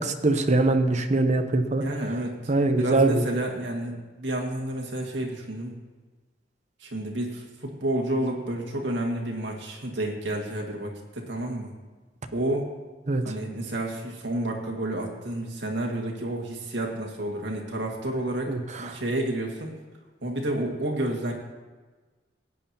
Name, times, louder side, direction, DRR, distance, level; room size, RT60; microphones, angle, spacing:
voice 1, 0.0-1.8 2.5-3.2 13.1-13.2 18.5-18.9, right 2 dB, 40° right, 6 dB, 0.7 m, -23 dB
voice 2, 1.8-2.5 2.8-5.8 6.8-11.7 12.3-12.7 13.2-18.5 18.8-19.7 20.2-21.3, right 1 dB, 70° right, 0 dB, 1.9 m, -30 dB
17.0 x 9.0 x 2.8 m, 1.3 s
head